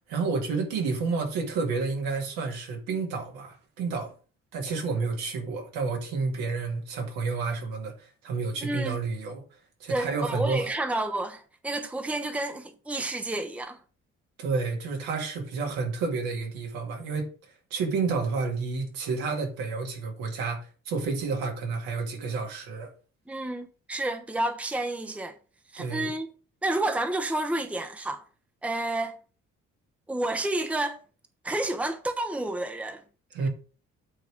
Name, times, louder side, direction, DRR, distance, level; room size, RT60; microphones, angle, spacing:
voice 1, 0.1-4.1 4.5-9.4 9.8-10.7 14.4-17.3 17.7-22.9 25.8-26.2 33.3-33.5, right 4 dB, 65° right, 2.2 m, -30 dB
voice 2, 8.6-9.0 9.9-13.8 23.3-25.3 25.7-26.3 26.6-28.2 28.6-29.2 30.1-31.0 31.4-33.0, right 2 dB, 5° right, 1.0 m, -30 dB
8.8 x 4.6 x 5.1 m
figure-of-eight pair, 40°, 39 cm